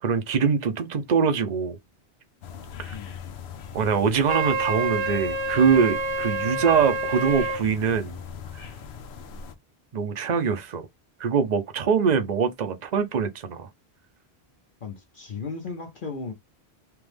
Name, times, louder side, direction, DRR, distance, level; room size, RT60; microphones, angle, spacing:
voice 1, 0.0-1.8 2.8-2.9 3.7-8.2 8.5-8.7 9.9-10.8 11.2-13.7, right 6 dB, 45° right, 0.8 m, -23 dB
sound 1, 2.4-9.6, left 6 dB, 80° left, 0.9 m, -41 dB
Wind instrument woodwind instrument, 4.3-7.6, right 2 dB, 90° right, 0.9 m, -27 dB
voice 2, 14.8-16.3, left 4 dB, 55° left, 0.9 m, -35 dB
3.4 x 3.0 x 3.3 m
omnidirectional pair, 1.1 m